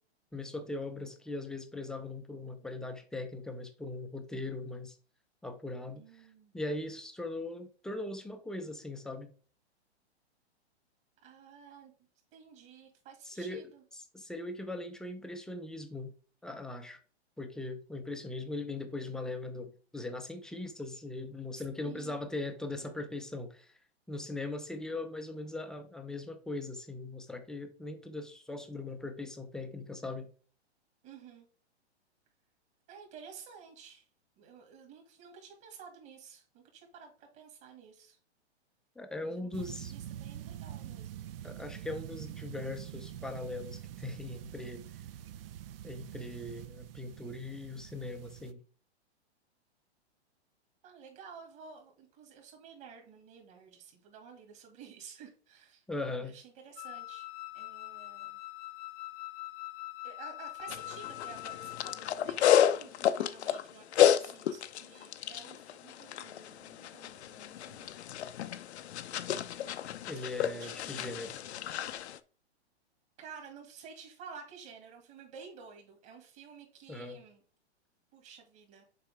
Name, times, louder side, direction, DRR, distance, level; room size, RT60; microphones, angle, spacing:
voice 1, 0.3-5.0 5.4-6.3 6.5-9.3 13.2-13.7 13.9-16.1 16.4-17.0 17.4-23.8 24.1-30.3 39.0-39.9 41.4-44.8 45.8-48.6 55.9-56.4 70.1-71.3 76.9-77.2, left 2 dB, ahead, 0.5 m, -40 dB
voice 2, 5.9-6.6 11.2-11.9 12.3-13.8 21.5-22.2 31.0-31.5 32.9-34.0 34.4-38.2 39.2-41.2 50.8-57.3 57.5-58.4 60.0-67.9 70.5-71.1 73.2-77.4 78.1-78.8, right 6 dB, 35° right, 2.1 m, -52 dB
sound 1, 39.5-48.5, right 11 dB, 55° right, 0.5 m, -45 dB
Wind instrument woodwind instrument, 56.8-62.1, left 19 dB, 45° left, 0.9 m, -43 dB
sound 2, 60.7-72.2, left 10 dB, 70° left, 0.7 m, -31 dB
6.8 x 4.6 x 3.4 m
hypercardioid pair, 135°, 34 cm